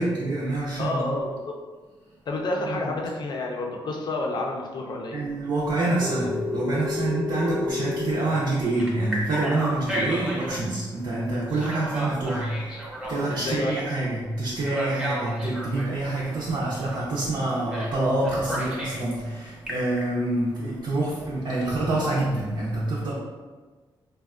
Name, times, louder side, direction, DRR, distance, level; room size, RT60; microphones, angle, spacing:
voice 1, 0.0-1.1 2.7-2.8 5.1-23.1, right 2 dB, 60° right, -6 dB, 0.5 m, -27 dB
voice 2, 0.8-1.5 2.3-5.2 6.9-7.1 13.3-13.7 14.9-15.0, left 2 dB, 55° left, 0 dB, 0.5 m, -29 dB
Telephone, 6.0-8.2 8.8-10.5 11.5-13.8 14.6-15.9 17.7-17.9 18.2-19.0 19.5-20.0, left 1 dB, 10° right, 0.7 m, -31 dB
3.4 x 2.2 x 2.4 m, 1.4 s
wide cardioid pair, 125°, 9 cm